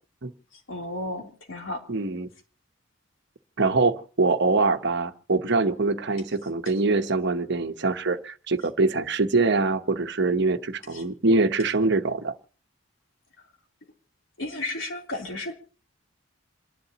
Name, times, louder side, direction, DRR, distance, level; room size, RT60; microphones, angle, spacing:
voice 1, 0.7-1.8 10.9-11.0 14.4-15.5, left 2 dB, 70° left, 1 dB, 3.4 m, -33 dB
voice 2, 1.9-2.3 3.6-12.3, right 3 dB, 60° right, 8 dB, 1.0 m, -24 dB
28.0 x 11.0 x 2.9 m, 0.40 s
head